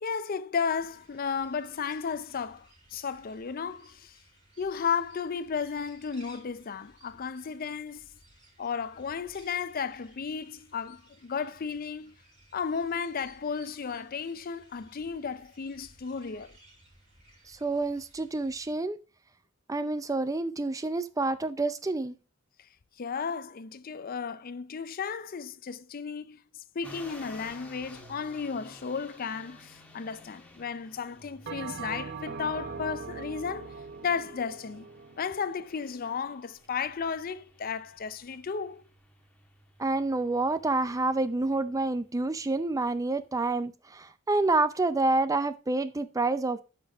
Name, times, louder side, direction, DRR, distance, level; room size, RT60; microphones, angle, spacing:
voice 1, 0.0-4.2 4.6-8.1 8.6-12.2 12.5-16.6 23.0-34.9 35.2-38.8, left 6 dB, 45° left, 0.5 m, -34 dB
sound 1, 0.7-18.7, right 1 dB, 35° right, 4.6 m, -59 dB
voice 2, 17.5-19.0 19.7-22.1 39.8-46.6, right 2 dB, 15° right, 0.4 m, -28 dB
sound 2, 26.8-43.4, left 1 dB, 5° left, 1.6 m, -54 dB
Bell, 31.5-36.1, right 4 dB, 55° right, 0.8 m, -41 dB
9.5 x 6.1 x 3.4 m
head